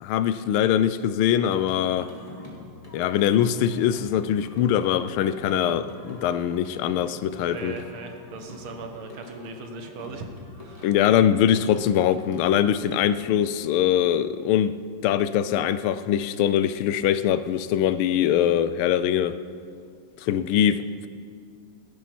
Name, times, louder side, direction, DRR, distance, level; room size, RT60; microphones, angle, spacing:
voice 1, 0.0-2.1 2.9-7.7 10.8-14.7 15.0-19.4 20.2-21.1, left 10 dB, 80° left, 13 dB, 1.5 m, -22 dB
Singing, 1.4-13.8, left 1 dB, 15° left, 2.2 m, -46 dB
voice 2, 7.4-10.9, right 3 dB, 75° right, 4 dB, 2.2 m, -39 dB
16.0 x 12.5 x 6.0 m, 2.3 s
omnidirectional pair, 2.3 m